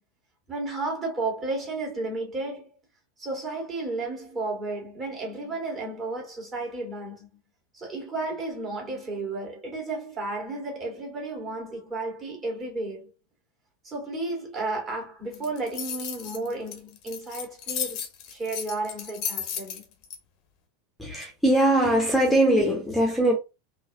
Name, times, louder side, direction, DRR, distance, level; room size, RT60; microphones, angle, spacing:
voice 1, 0.5-2.7 3.2-7.4 7.7-13.1 13.8-18.0 18.3-19.8, right 2 dB, 25° right, 1.9 m, -33 dB
sound 1, 15.3-20.2, left 8 dB, 45° left, 0.8 m, -34 dB
voice 2, 21.0-23.4, right 1 dB, ahead, 1.0 m, -21 dB
3.8 x 2.7 x 2.8 m
figure-of-eight pair, 85°, 0 cm